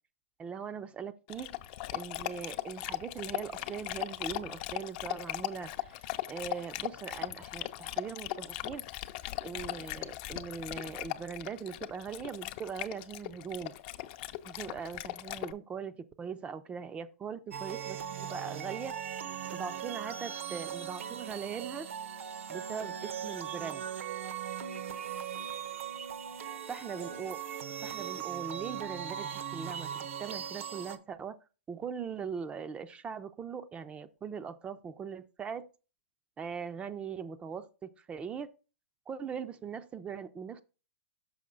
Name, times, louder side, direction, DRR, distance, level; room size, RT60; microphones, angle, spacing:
voice 1, 0.4-1.5 1.9-9.1 9.4-13.7 14.5-19.0 19.5-21.9 22.5-23.9 26.7-27.4 27.8-31.4 31.7-35.7 36.4-38.5 39.1-40.6, right 6 dB, 15° right, 0.4 m, -40 dB
Dog, 1.3-15.5, left 15 dB, 45° left, 0.5 m, -39 dB
sound 1, 17.5-31.0, right 8 dB, 75° right, 0.9 m, -39 dB
6.3 x 5.2 x 3.8 m
hypercardioid pair, 130°, 7 cm